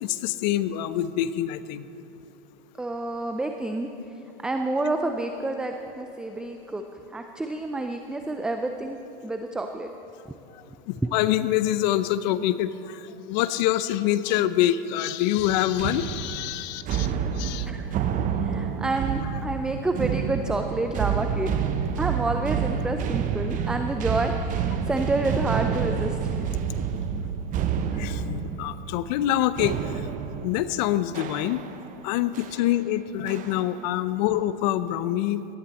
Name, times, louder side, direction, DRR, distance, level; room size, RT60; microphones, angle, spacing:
voice 1, 0.0-1.8 10.9-13.0 13.3-17.1 17.4-17.7 28.0-29.8 30.4-31.6 32.0-35.5, left 13 dB, 50° left, 14 dB, 0.7 m, -25 dB
voice 2, 2.8-3.9 4.4-6.8 7.1-9.0 9.2-9.9 10.3-10.4 11.0-11.1 17.1-17.3 17.7-17.8 18.3-26.5, right 2 dB, 5° right, 5 dB, 0.4 m, -29 dB
sound 1, 15.4-31.9 32.3-32.6 33.3-33.8, right 7 dB, 25° right, 0.8 m, -29 dB
18.5 x 13.5 x 4.1 m, 2.9 s
hypercardioid pair, 120°, 29 cm